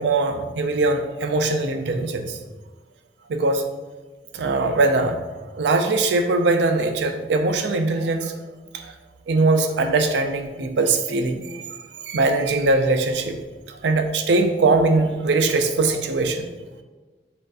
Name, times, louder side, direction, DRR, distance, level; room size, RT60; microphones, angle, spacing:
voice 1, 0.0-2.4 3.3-3.7 4.3-5.2 5.5-8.4 8.7-8.9 9.3-11.6 12.1-13.4 13.7-16.6, right 3 dB, 75° right, 6 dB, 0.4 m, -21 dB
6.4 x 2.5 x 2.5 m, 1.3 s
head